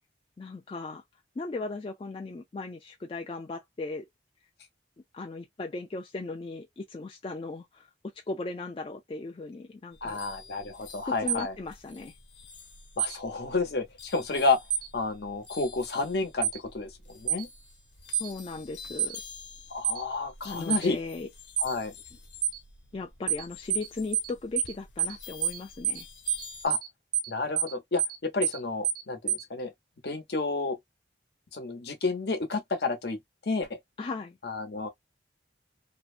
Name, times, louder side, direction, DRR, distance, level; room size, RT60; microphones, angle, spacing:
voice 1, 0.4-1.0 1.4-4.1 5.1-7.9 8.2-10.2 11.0-12.1 18.2-19.2 20.4-21.3 22.9-26.1 34.0-34.4, left 3 dB, 30° left, 0.3 m, -37 dB
sound 1, 9.9-26.7, left 4 dB, 85° left, 0.9 m, -49 dB
voice 2, 10.0-11.5 13.0-14.6 14.9-17.5 19.7-21.0 21.6-21.9 26.6-26.8 27.3-29.7 30.0-30.8 31.5-33.2 33.5-33.7 34.4-34.9, left 3 dB, 60° left, 0.8 m, -30 dB
sound 2, 11.3-11.4 13.0-13.2 14.7-14.9 16.4-16.6 17.3-17.4 18.1-18.3 19.0-19.2 19.8-20.0 20.7-20.9 21.6-21.7 22.4-22.6 23.3-23.4 23.7-23.9 24.1-24.3 24.6-24.7 25.0-25.2 25.4-25.6 25.8-26.0 26.3-26.4 26.7-26.9 27.1-27.3 27.6-27.7 28.0-28.2 28.4-28.6 28.8-29.0 29.3-29.4, right 10 dB, 50° right, 0.5 m, -27 dB
2.6 x 2.1 x 2.3 m
head